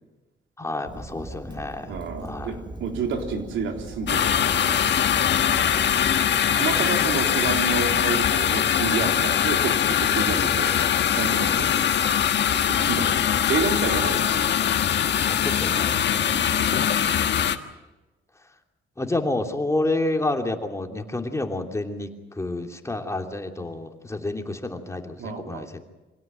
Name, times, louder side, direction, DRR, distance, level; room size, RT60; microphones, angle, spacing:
voice 1, 0.6-2.5 11.4-11.7 15.3-16.0 19.0-25.8, left 2 dB, 15° left, 4 dB, 2.9 m, -30 dB
Fire, 0.8-6.3, right 2 dB, 20° right, 2.0 m, -39 dB
voice 2, 1.9-4.8 6.5-10.7 11.2-14.5 14.8-14.9 16.3-16.8 25.2-25.7, right 5 dB, 80° right, 4 dB, 3.8 m, -30 dB
sound 1, 4.1-17.6, left 9 dB, 60° left, 1.5 m, -22 dB
25.0 x 17.0 x 9.2 m, 1.1 s
cardioid pair, 90°, 20 cm